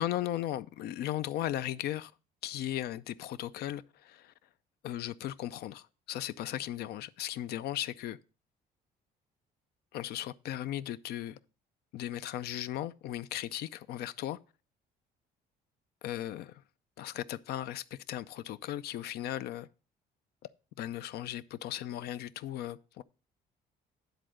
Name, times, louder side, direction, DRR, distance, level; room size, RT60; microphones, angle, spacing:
voice 1, 0.0-2.1 2.4-4.3 4.8-8.2 9.9-11.4 11.9-14.4 16.0-16.6 17.0-19.7 20.8-23.0, left 12 dB, 70° left, 0.5 m, -37 dB
10.0 x 3.8 x 6.3 m
cardioid pair, 110°, 17 cm